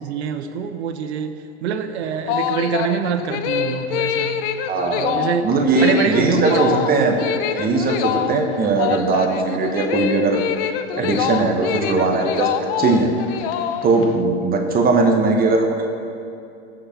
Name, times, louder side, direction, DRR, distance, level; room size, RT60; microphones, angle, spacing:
voice 1, 0.0-4.4 4.9-5.5 5.8-7.4, right 7 dB, 75° right, 8 dB, 1.2 m, -25 dB
sound 1, 2.0-14.1, left 9 dB, 55° left, 0.8 m, -25 dB
voice 2, 4.7-7.1 7.6-10.4 10.9-13.1 13.8-15.8, right 3 dB, 25° right, 2 dB, 1.5 m, -19 dB
15.5 x 6.6 x 6.0 m, 2.6 s
hypercardioid pair, 120°, 33 cm